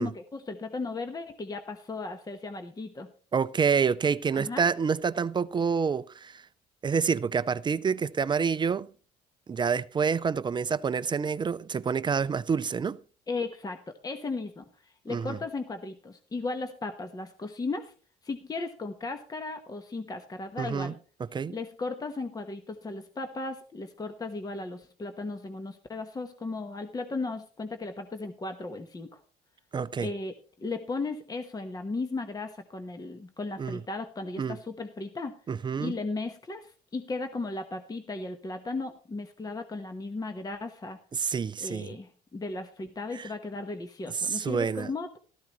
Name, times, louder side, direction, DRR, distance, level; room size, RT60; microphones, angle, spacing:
voice 1, 0.0-3.1 4.3-4.7 13.3-17.9 18.2-20.9 21.5-29.2 30.0-35.4 35.8-41.0 41.6-45.2, left 3 dB, 20° left, 1.2 m, -36 dB
voice 2, 3.3-6.4 6.8-8.9 9.5-13.0 15.1-15.4 20.6-20.9 21.3-21.6 29.7-30.1 33.6-33.8 34.4-34.6 35.5-35.9 41.1-42.0 43.1-43.3 44.1-44.9, right 6 dB, 25° right, 0.5 m, -28 dB
13.5 x 13.0 x 3.1 m
cardioid pair, 110°, 17 cm